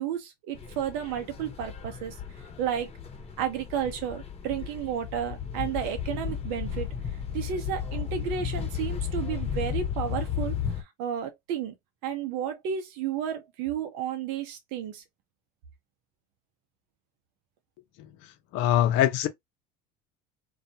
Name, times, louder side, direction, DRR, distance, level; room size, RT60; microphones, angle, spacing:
voice 1, 0.0-2.9 3.4-6.9 7.3-11.7 12.0-15.0, right 9 dB, 70° right, 0.7 m, -32 dB
sound 1, 0.5-10.8, left 8 dB, 30° left, 0.9 m, -34 dB
voice 2, 18.5-19.3, left 12 dB, 65° left, 0.7 m, -22 dB
2.3 x 2.1 x 2.7 m
supercardioid pair, 85°, 21 cm